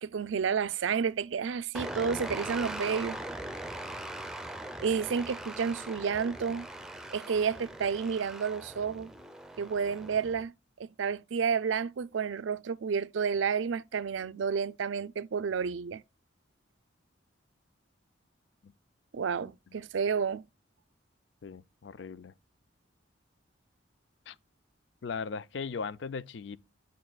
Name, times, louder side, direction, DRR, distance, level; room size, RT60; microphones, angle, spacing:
voice 1, 0.0-3.2 4.8-6.7 7.1-9.1 9.6-10.5 10.8-16.0 19.1-20.5, right 6 dB, 75° right, 0.4 m, -30 dB
sound 1, 1.7-10.4, right 1 dB, 5° right, 0.6 m, -41 dB
voice 2, 21.4-22.3 24.3-24.4 25.0-26.6, left 5 dB, 65° left, 0.4 m, -38 dB
8.7 x 6.9 x 2.2 m
head